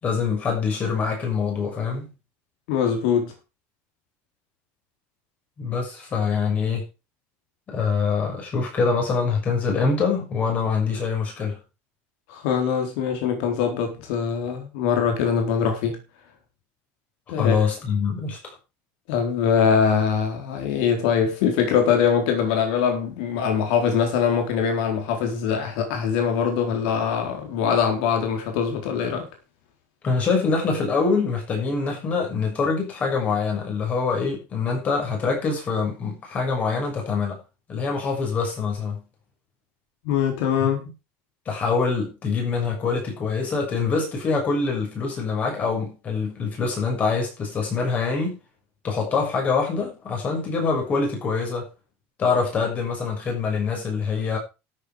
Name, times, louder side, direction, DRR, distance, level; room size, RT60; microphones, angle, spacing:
voice 1, 0.0-2.1 5.6-6.9 7.7-11.6 17.3-18.5 30.0-37.4 37.7-39.0 41.4-48.4 48.8-51.7 52.2-54.4, left 5 dB, 25° left, 6.6 m, -24 dB
voice 2, 2.7-3.3 12.3-16.0 17.3-17.6 19.1-29.3 40.0-40.8, left 7 dB, 75° left, 4.1 m, -23 dB
13.0 x 8.8 x 5.0 m
cardioid pair, 175°, 6 cm